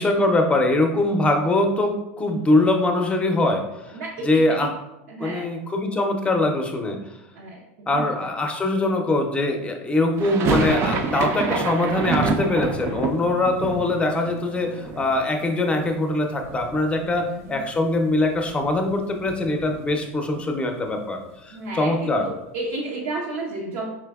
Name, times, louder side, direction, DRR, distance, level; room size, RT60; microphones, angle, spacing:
voice 1, 0.0-4.0 4.2-4.7 5.2-7.0 7.9-21.2 21.4-22.3, left 2 dB, 15° left, 4 dB, 0.6 m, -22 dB
voice 2, 3.9-4.7 5.1-5.5 7.4-8.1 17.0-17.6 21.5-23.9, right 2 dB, 80° right, -3 dB, 0.7 m, -32 dB
sound 1, 10.2-16.1 16.4-17.2 17.5-17.6 17.9-20.0, right 4 dB, 40° right, 0.5 m, -27 dB
5.0 x 3.3 x 2.3 m, 0.93 s
hypercardioid pair, 100°, 7 cm